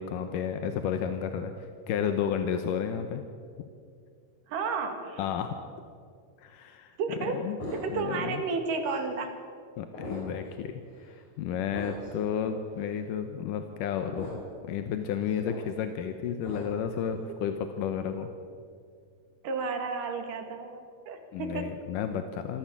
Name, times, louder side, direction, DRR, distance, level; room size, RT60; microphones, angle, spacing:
voice 1, 0.0-3.3 5.2-5.6 6.4-6.9 7.3-7.6 7.9-8.4 9.8-10.8 11.1-14.4 14.7-18.3 21.3-22.6, left 8 dB, 85° left, 7 dB, 2.6 m, -32 dB
voice 2, 4.5-5.3 7.0-9.3 19.4-21.8, right 4 dB, 90° right, 6 dB, 3.5 m, -32 dB
sound 1, 7.6-8.2 8.9-9.0 9.9-10.5 10.9-11.1 11.7-12.2 12.9-13.0 14.1-14.6 15.0-15.7 16.4-16.9, left 1 dB, 65° left, 5.8 m, -40 dB
26.5 x 14.0 x 7.3 m, 2.2 s
omnidirectional pair, 3.7 m